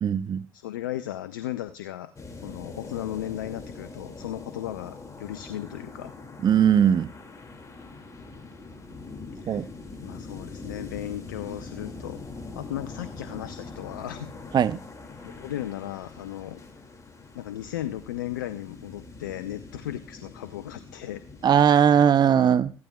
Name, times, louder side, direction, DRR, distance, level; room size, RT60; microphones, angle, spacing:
voice 1, 0.0-0.4 6.4-7.1 9.5-9.7 14.5-14.8 21.4-22.7, right 8 dB, 45° right, 0.6 m, -19 dB
voice 2, 0.5-2.1 2.4-6.1 9.3-9.7 10.0-12.2 12.5-14.3 15.2-16.6 17.3-21.2, left 13 dB, 85° left, 0.5 m, -36 dB
sound 1, 2.2-21.6, left 3 dB, 30° left, 2.3 m, -43 dB
15.5 x 12.0 x 2.3 m
hypercardioid pair, 55°, 10 cm